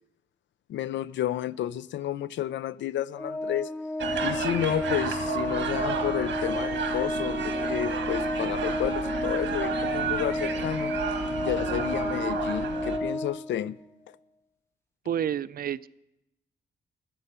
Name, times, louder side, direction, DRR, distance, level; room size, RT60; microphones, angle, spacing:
voice 1, 0.7-3.7 4.2-10.9 11.4-13.8, left 11 dB, 85° left, 0.4 m, -31 dB
Organ, 3.1-13.9, left 1 dB, 15° left, 0.6 m, -31 dB
sound 1, 4.0-13.0, right 6 dB, 90° right, 1.6 m, -32 dB
voice 2, 15.1-15.9, right 9 dB, 55° right, 0.4 m, -29 dB
15.0 x 7.4 x 6.7 m
wide cardioid pair, 120°, 19 cm